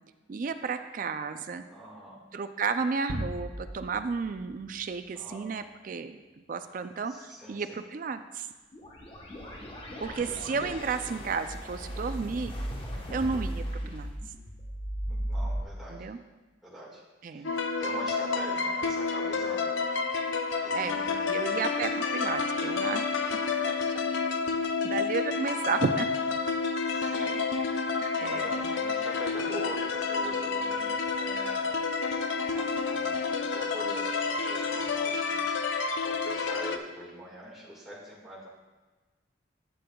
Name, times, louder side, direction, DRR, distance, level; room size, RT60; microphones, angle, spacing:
voice 1, 0.3-1.6 2.3-6.2 6.5-8.5 10.0-12.5 13.1-14.1 15.9-16.2 17.2-17.5 20.7-23.1 23.6-23.7 24.8-26.1 27.1-27.4 28.2-28.6, right 5 dB, 45° right, 9 dB, 0.4 m, -32 dB
voice 2, 1.7-2.2 5.1-5.5 7.1-7.8 10.2-10.4 13.0-13.4 15.1-16.1 16.6-19.8 20.6-21.6 22.2-22.4 26.9-27.4 28.3-31.8 32.5-35.4 36.0-38.5, equal, ahead, -7 dB, 1.7 m, -44 dB
sound 1, 3.1-5.6, equal, 85° right, 0.9 m, -39 dB
sound 2, 8.7-15.6, equal, 30° left, 1.1 m, -36 dB
sound 3, 17.4-36.8, left 4 dB, 90° left, 0.6 m, -29 dB
11.5 x 8.4 x 2.3 m, 1.2 s
head